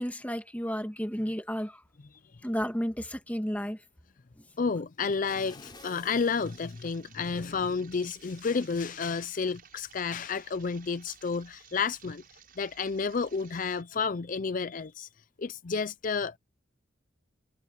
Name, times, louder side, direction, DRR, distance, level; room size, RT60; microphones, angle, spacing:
voice 1, 0.0-1.8 2.4-3.8, equal, 10° left, 1.7 m, -32 dB
voice 2, 4.6-12.2 12.6-15.1 15.4-16.4, left 5 dB, 45° left, 0.5 m, -31 dB
sound 1, 5.3-7.4 7.9-8.0, left 3 dB, 25° left, 5.4 m, -51 dB
sound 2, 5.7-13.8, right 8 dB, 50° right, 7.7 m, -56 dB
head